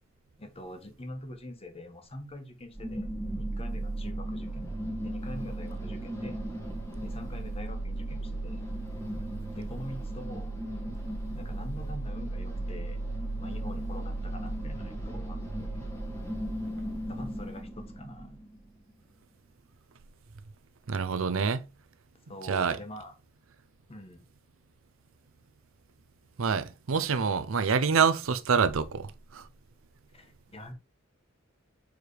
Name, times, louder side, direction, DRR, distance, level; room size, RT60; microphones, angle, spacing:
voice 1, 0.4-3.1 3.4-4.7 5.0-6.4 7.0-8.6 9.5-10.5 11.3-13.0 13.4-15.9 17.1-18.4 22.3-23.1 23.9-24.2 30.1-30.7, left 1 dB, 30° left, 1.3 m, -44 dB
sound 1, 2.7-18.7, right 1 dB, 15° left, 1.9 m, -35 dB
voice 2, 20.9-21.7 22.5-22.8 26.4-29.4, right 6 dB, 90° right, 0.6 m, -26 dB
6.6 x 4.7 x 3.3 m
head